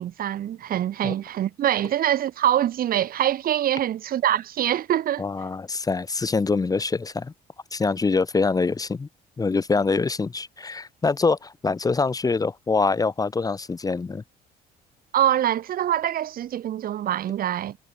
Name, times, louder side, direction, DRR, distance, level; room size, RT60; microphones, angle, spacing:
voice 1, 0.0-5.3 15.1-17.8, right 11 dB, 60° right, 3.0 m, -24 dB
voice 2, 5.2-7.3 7.7-9.1 9.4-14.2, left 4 dB, 20° left, 1.4 m, -24 dB
cardioid pair, 110°, 17 cm